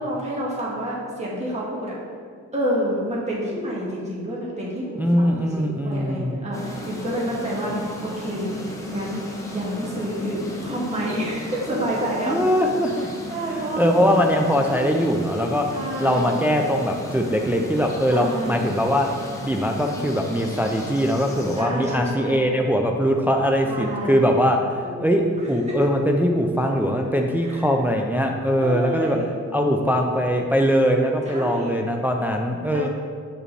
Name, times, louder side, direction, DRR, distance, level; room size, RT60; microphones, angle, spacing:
voice 1, 0.0-1.9 2.5-7.7 8.0-9.2 9.5-12.3 13.3-14.1 14.6-14.9 15.7-16.3 18.1-18.6 19.7-20.1 21.6-22.5 23.7-24.2 24.8-25.6 27.4-27.7 28.6-29.3 31.3-31.7 32.7-32.9, equal, 20° right, -6 dB, 1.7 m, -29 dB
voice 2, 5.0-6.4 12.3-13.1 13.5-15.7 16.0-19.1 19.4-25.2 25.5-29.2 29.5-32.9, equal, 5° right, 2 dB, 0.4 m, -21 dB
sound 1, 6.5-21.6, equal, 10° left, 1.0 m, -35 dB
8.8 x 5.0 x 3.3 m, 2.1 s
cardioid pair, 100°, 31 cm